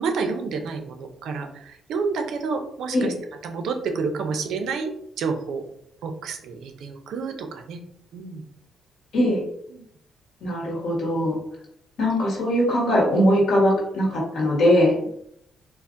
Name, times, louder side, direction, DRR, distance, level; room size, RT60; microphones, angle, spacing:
voice 1, 0.0-3.1 3.4-5.6 6.0-7.8 8.1-8.4 9.7-9.8, right 4 dB, 75° right, 5 dB, 0.5 m, -29 dB
voice 2, 9.1-9.4 10.4-11.4 12.0-15.1, equal, 70° left, -2 dB, 1.3 m, -21 dB
3.9 x 2.5 x 2.6 m, 0.72 s
cardioid pair, 125°, 0 cm